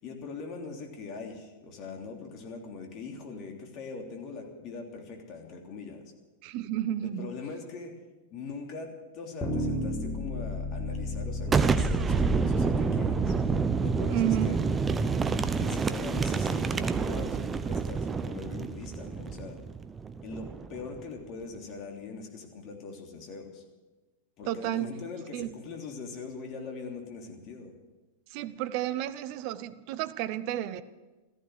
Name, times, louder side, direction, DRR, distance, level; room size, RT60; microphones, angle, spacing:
voice 1, 0.0-6.1 7.0-7.9 8.3-13.3 13.8-14.6 15.2-19.6 20.2-23.6 24.4-27.7, left 4 dB, 40° left, 2 dB, 3.2 m, -41 dB
voice 2, 6.4-7.3 14.1-14.5 24.5-24.9 25.3-25.5 28.3-30.8, right 13 dB, 50° right, 15 dB, 0.8 m, -31 dB
sound 1, 9.4-15.7, equal, 25° left, 4.7 m, -34 dB
Boom, 11.4-21.0, right 5 dB, 20° right, 0.8 m, -28 dB
14.5 x 14.5 x 6.6 m, 1.2 s
figure-of-eight pair, 95°, 0 cm